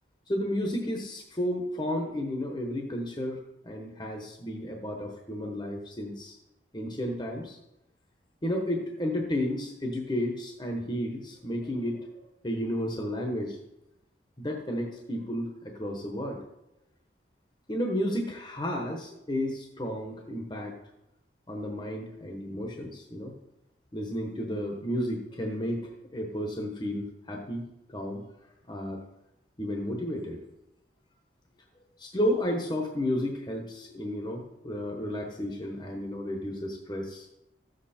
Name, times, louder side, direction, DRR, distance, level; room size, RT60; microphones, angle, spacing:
voice 1, 0.3-3.4 3.6-6.4 6.7-7.6 8.4-12.1 12.4-13.6 14.4-16.4 17.7-20.7 21.5-23.3 23.9-27.6 27.9-28.2 28.7-29.0 29.6-30.4 32.0-37.3, equal, 25° left, 1 dB, 1.2 m, -32 dB
14.0 x 7.7 x 4.4 m, 0.90 s
head